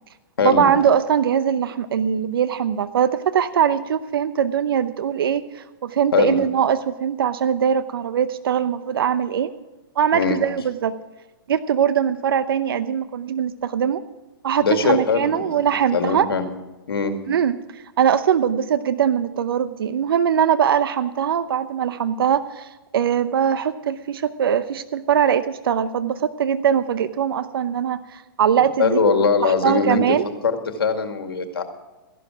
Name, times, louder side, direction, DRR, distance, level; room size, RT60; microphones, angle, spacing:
voice 1, 0.4-9.5 10.0-10.9 11.5-14.0 14.4-16.3 17.3-29.0 29.4-30.3, right 8 dB, 75° right, 13 dB, 0.8 m, -21 dB
voice 2, 14.6-15.6 15.9-16.5 16.9-17.1 28.8-30.0 30.4-31.6, left 5 dB, 90° left, 6 dB, 2.1 m, -21 dB
15.0 x 11.5 x 6.1 m, 1.1 s
hypercardioid pair, 130°, 12 cm